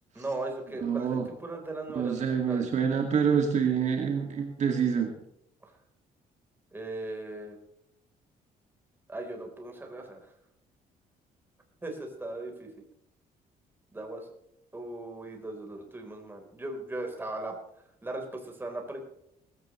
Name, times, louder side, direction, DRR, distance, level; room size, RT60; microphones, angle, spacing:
voice 1, 0.2-2.8 6.7-7.6 9.1-10.2 11.8-12.7 13.9-14.2 14.7-17.5 18.0-19.0, right 2 dB, 15° right, 2 dB, 3.9 m, -38 dB
voice 2, 0.8-1.2 1.9-5.1, right 7 dB, 50° right, 3 dB, 2.2 m, -26 dB
19.0 x 16.0 x 3.2 m, 0.78 s
cardioid pair, 135°, 16 cm